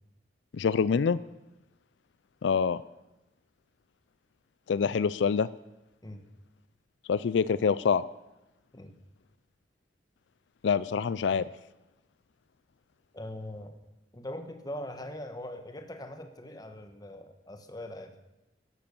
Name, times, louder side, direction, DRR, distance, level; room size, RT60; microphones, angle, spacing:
voice 1, 0.5-1.2 2.4-2.8 4.7-5.5 7.1-8.0 10.6-11.4, left 6 dB, 85° left, 17 dB, 0.4 m, -25 dB
voice 2, 13.1-13.8 14.1-18.1, left 1 dB, 20° left, 7 dB, 1.2 m, -41 dB
12.0 x 11.5 x 7.0 m, 0.96 s
head